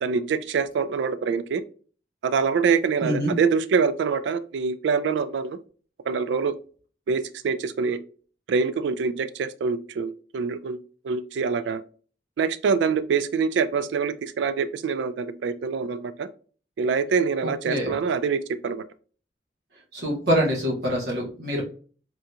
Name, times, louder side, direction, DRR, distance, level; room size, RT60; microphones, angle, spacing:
voice 1, 0.0-1.6 2.2-5.6 6.1-6.5 7.1-8.0 8.5-10.8 11.0-11.8 12.4-16.3 16.8-18.8, right 5 dB, 80° right, 0.3 m, -25 dB
voice 2, 3.0-3.3 17.7-17.9 19.9-21.6, equal, 65° right, 1.2 m, -25 dB
3.7 x 2.8 x 2.3 m
head